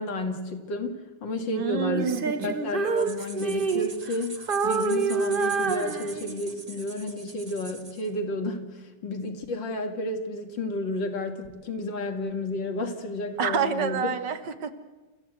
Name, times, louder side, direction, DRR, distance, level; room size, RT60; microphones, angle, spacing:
voice 1, 0.0-2.1 2.4-4.4 4.6-14.1, left 1 dB, 85° left, 6 dB, 2.7 m, -31 dB
voice 2, 1.5-2.5 13.4-14.7, right 6 dB, 75° right, 8 dB, 2.1 m, -28 dB
Female singing, 1.9-4.2 4.5-6.5, right 5 dB, 40° right, 0.9 m, -27 dB
sound 1, 2.8-8.1, right 3 dB, 20° right, 1.4 m, -43 dB
28.0 x 15.0 x 8.0 m, 1.2 s
omnidirectional pair, 2.0 m